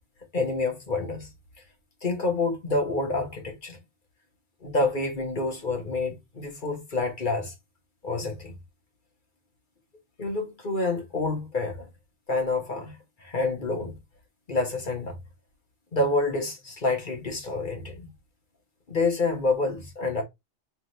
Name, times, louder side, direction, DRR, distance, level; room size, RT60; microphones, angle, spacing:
voice 1, 0.3-1.3 2.0-3.8 4.6-7.5 8.0-8.6 10.2-11.9 12.3-14.0 14.5-15.2 15.9-18.1 18.9-20.2, left 3 dB, 45° left, 1.5 m, -28 dB
3.7 x 3.5 x 3.1 m
omnidirectional pair, 1.2 m